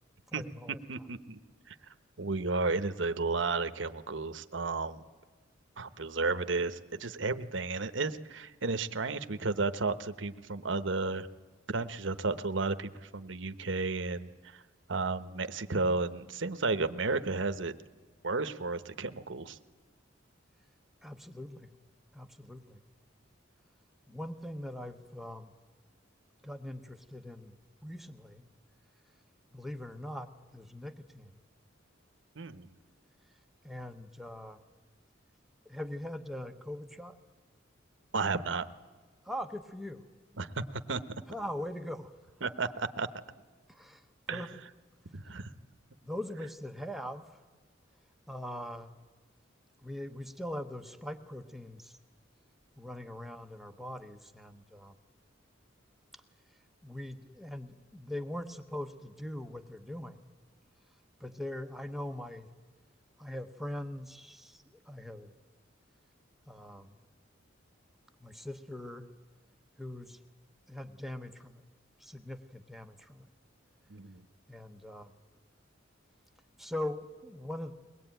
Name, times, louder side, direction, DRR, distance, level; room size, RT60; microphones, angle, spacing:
voice 1, 0.3-0.8 21.0-21.7 22.1-22.8 24.1-25.5 26.4-27.6 27.8-28.5 29.5-31.4 33.6-34.6 35.6-37.2 39.2-40.1 41.3-42.1 42.4-42.5 43.7-44.6 46.0-47.3 48.3-48.9 49.8-52.0 52.8-54.9 56.1-56.2 56.8-60.3 61.2-62.5 63.2-65.3 66.5-66.9 68.2-69.1 69.8-70.2 70.7-71.6 72.0-73.3 74.5-75.2 76.6-77.7, left 1 dB, ahead, 6 dB, 0.9 m, -41 dB
voice 2, 0.9-1.4 1.7-1.8 2.2-5.0 5.8-11.3 11.7-14.6 14.9-17.7 18.2-19.6 32.4-32.7 38.1-38.7 40.4-41.0 42.4-43.1 44.3-44.5 45.1-45.5 73.9-74.2, right 3 dB, 70° right, 11 dB, 1.0 m, -33 dB
22.5 x 19.5 x 9.1 m, 1.3 s
head